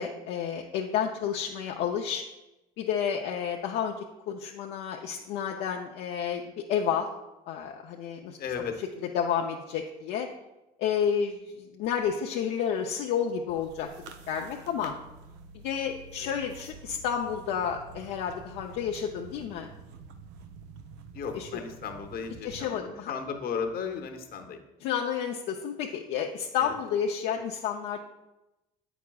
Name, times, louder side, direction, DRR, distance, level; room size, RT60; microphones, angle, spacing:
voice 1, 0.0-2.2 2.8-4.0 4.3-7.1 7.5-8.4 9.1-10.3 10.8-11.4 11.7-13.9 14.3-14.9 15.6-19.7 21.3-21.5 22.4-23.1 24.8-28.0, left 8 dB, 75° left, 1 dB, 0.5 m, -30 dB
voice 2, 8.4-8.8 16.2-16.3 21.1-24.6 26.6-26.8, left 6 dB, 60° left, 6 dB, 0.9 m, -35 dB
sound 1, 13.5-22.7, right 4 dB, 85° right, 0.5 m, -48 dB
8.3 x 5.9 x 2.3 m, 0.97 s
supercardioid pair, 75°, 18 cm